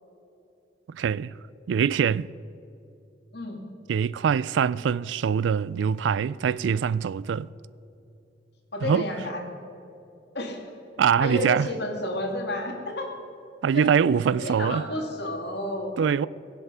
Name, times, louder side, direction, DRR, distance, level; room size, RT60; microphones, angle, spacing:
voice 1, 0.9-1.3 1.7-2.3 3.9-7.5 8.8-9.1 11.0-11.7 13.6-14.8 16.0-16.3, right 7 dB, 75° right, 0.3 m, -23 dB
voice 2, 8.7-9.4 10.3-10.6 11.2-13.1 13.7-13.9 14.4-15.9, left 1 dB, 65° left, 2.4 m, -31 dB
22.5 x 7.7 x 5.5 m
head